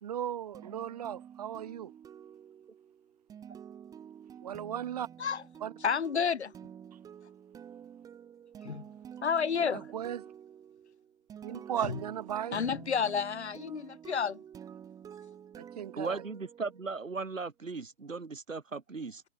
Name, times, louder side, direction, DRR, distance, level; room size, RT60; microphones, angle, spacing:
voice 1, 0.0-1.9 4.4-5.1 5.6-5.7 9.7-10.2 11.4-12.6 15.6-16.2, right 10 dB, 30° right, 0.9 m, -36 dB
sound 1, 0.5-17.2, right 8 dB, 10° right, 2.7 m, -49 dB
voice 2, 5.8-6.5 8.6-8.9 9.2-9.9 11.8-12.0 12.5-14.4, left 6 dB, 60° left, 1.3 m, -30 dB
voice 3, 16.0-19.2, right 4 dB, 90° right, 1.1 m, -37 dB
figure-of-eight pair, 135°, 38 cm